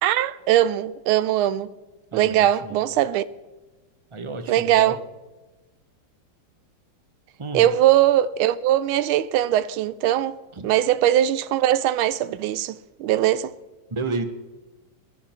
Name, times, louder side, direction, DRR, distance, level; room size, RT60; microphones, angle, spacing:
voice 1, 0.0-1.7 2.1-3.2 4.5-5.0 7.5-13.5, right 12 dB, 90° right, 1.5 m, -21 dB
voice 2, 2.1-2.8 4.1-5.0 7.4-7.7 10.5-10.7 13.9-14.2, right 3 dB, 35° right, 0.5 m, -31 dB
21.0 x 12.0 x 4.4 m
omnidirectional pair, 2.2 m